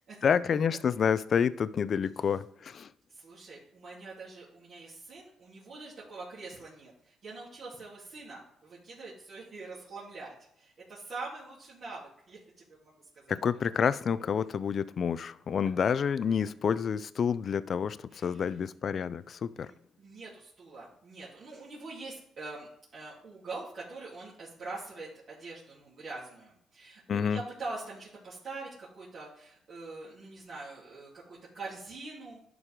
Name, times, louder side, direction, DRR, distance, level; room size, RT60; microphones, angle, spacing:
voice 1, 0.2-2.9 13.3-19.7 27.1-27.4, left 7 dB, 55° left, 0.4 m, -28 dB
voice 2, 3.1-13.4 18.1-18.5 19.5-32.5, right 3 dB, 55° right, 3.1 m, -44 dB
11.0 x 4.7 x 3.8 m
cardioid pair, 90°, 0 cm